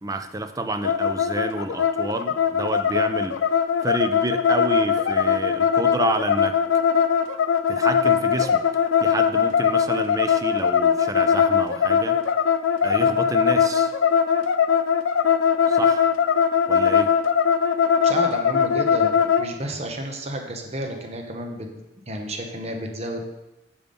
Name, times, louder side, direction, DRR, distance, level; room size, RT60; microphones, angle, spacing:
voice 1, 0.0-3.4 3.8-6.6 7.7-8.6 9.0-12.2 12.8-13.9 15.7-16.1 16.7-17.1, right 2 dB, 20° right, 8 dB, 0.4 m, -29 dB
sound 1, 0.8-19.5, left 7 dB, 85° left, 0.4 m, -20 dB
voice 2, 18.0-21.8 22.1-23.3, right 1 dB, 35° right, 3 dB, 0.8 m, -32 dB
7.0 x 5.2 x 5.3 m, 0.98 s
head